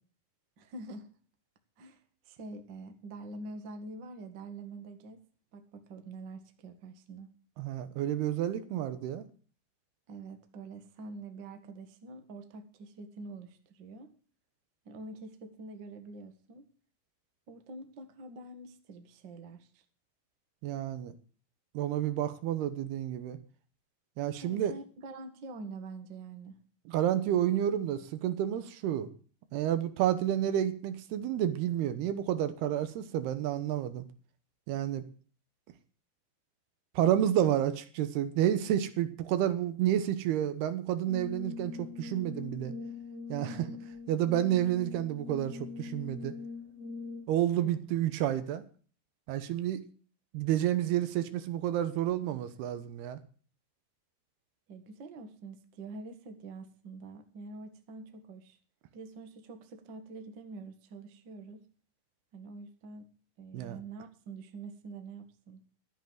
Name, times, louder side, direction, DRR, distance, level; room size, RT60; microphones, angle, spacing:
voice 1, 0.6-1.1 1.8-5.2 5.5-7.3 10.1-14.1 14.8-16.7 17.5-19.8 24.4-26.6 43.4-43.9 47.6-47.9 54.7-58.6 58.9-61.6 62.3-63.1 63.4-65.6, right 3 dB, 60° right, 7 dB, 1.2 m, -46 dB
voice 2, 7.6-9.3 20.6-21.1 21.7-23.4 24.2-24.7 26.9-29.1 29.5-34.0 34.7-35.1 37.0-42.7 43.3-43.6 44.1-46.3 47.3-48.6 49.3-49.8 50.3-53.2 63.5-63.8, right 11 dB, 75° right, 12 dB, 2.9 m, -30 dB
Brass instrument, 41.1-47.5, left 5 dB, 5° right, 2.2 m, -43 dB
13.0 x 8.2 x 7.6 m, 0.41 s
omnidirectional pair, 4.8 m